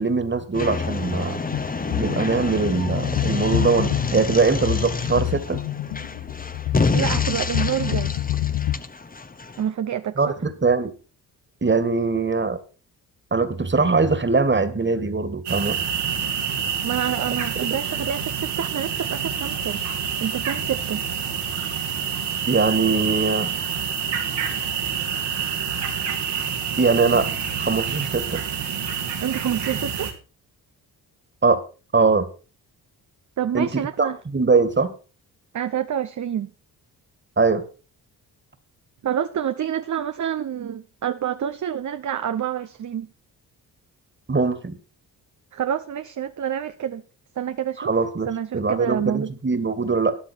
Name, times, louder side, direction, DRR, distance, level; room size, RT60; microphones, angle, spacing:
voice 1, 0.0-1.4 2.0-5.6 10.2-10.9 11.6-12.6 13.3-15.8 22.5-23.5 26.8-27.3 27.6-28.4 31.4-31.6 31.9-32.3 33.5-34.9 37.4-37.6 44.3-44.8 47.8-48.3 48.5-50.2, right 4 dB, 25° right, 2.1 m, -21 dB
sound 1, 0.5-9.7, left 3 dB, 20° left, 1.0 m, -28 dB
sound 2, 1.4-8.7, left 13 dB, 80° left, 1.3 m, -27 dB
voice 2, 6.9-8.1 9.6-10.3 16.8-19.8 20.2-21.0 29.2-30.1 33.4-34.2 35.5-36.5 39.0-43.1 45.5-47.0 47.4-48.0 48.3-49.3, right 9 dB, 45° right, 0.8 m, -27 dB
sound 3, 15.5-30.1, right 7 dB, 85° right, 3.1 m, -27 dB
13.5 x 10.0 x 4.6 m
supercardioid pair, 55°, 41 cm